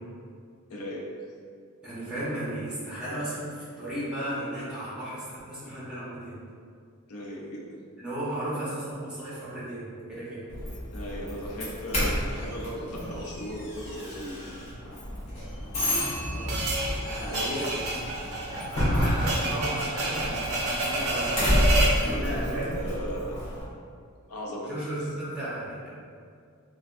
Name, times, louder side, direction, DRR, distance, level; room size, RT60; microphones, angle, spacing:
voice 1, 0.7-1.0 7.1-7.8 10.9-14.5 17.2-17.7 22.0-23.4 24.3-24.9, equal, 80° left, -3 dB, 0.5 m, -37 dB
voice 2, 1.8-6.4 8.0-10.5 16.3-16.7 17.0-17.8 18.6-21.3 22.0-22.7 24.6-25.9, right 1 dB, 5° right, -10 dB, 0.8 m, -35 dB
Doorbell, 10.5-23.6, equal, 30° left, 0.8 m, -30 dB
sound 1, 16.5-22.0, right 1 dB, 70° right, 0.5 m, -29 dB
3.2 x 2.2 x 2.5 m, 2.2 s
head